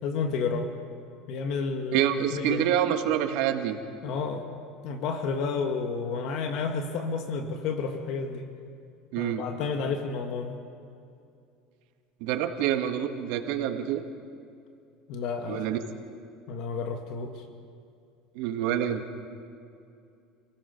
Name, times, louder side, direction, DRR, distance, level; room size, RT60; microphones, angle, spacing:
voice 1, 0.0-0.7 1.3-2.7 4.0-4.4 4.8-8.5 9.2-10.6 15.1-15.7 16.5-17.4, left 5 dB, 60° left, 5 dB, 1.7 m, -31 dB
voice 2, 1.9-3.8 9.1-9.4 12.2-14.0 15.5-15.8 18.3-19.0, right 10 dB, 70° right, 7 dB, 1.6 m, -27 dB
28.5 x 17.5 x 5.3 m, 2.5 s
cardioid pair, 135°, 0 cm